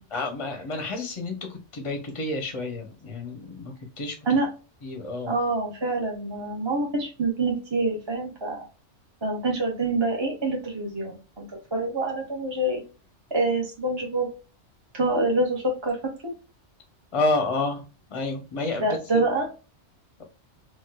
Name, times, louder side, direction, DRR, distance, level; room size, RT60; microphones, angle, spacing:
voice 1, 0.1-4.2 4.8-5.4 17.1-17.8 18.1-19.2, left 2 dB, 35° left, 4 dB, 0.6 m, -29 dB
voice 2, 5.3-8.6 9.2-12.8 13.3-14.3 14.9-16.0 16.2-16.3 18.8-19.5, right 2 dB, 25° right, 0 dB, 0.8 m, -26 dB
4.2 x 2.2 x 2.2 m, 0.33 s
omnidirectional pair, 1.2 m